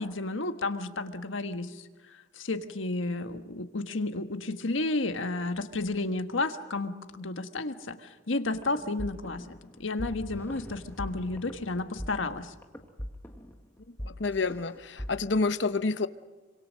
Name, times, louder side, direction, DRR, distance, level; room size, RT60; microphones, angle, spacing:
voice 1, 0.0-12.5, left 2 dB, 80° left, 8 dB, 1.5 m, -32 dB
sound 1, 8.5-15.1, equal, 10° left, 1.7 m, -41 dB
voice 2, 14.0-16.1, left 3 dB, 65° left, 12 dB, 0.9 m, -28 dB
26.5 x 25.5 x 6.4 m, 1.4 s
head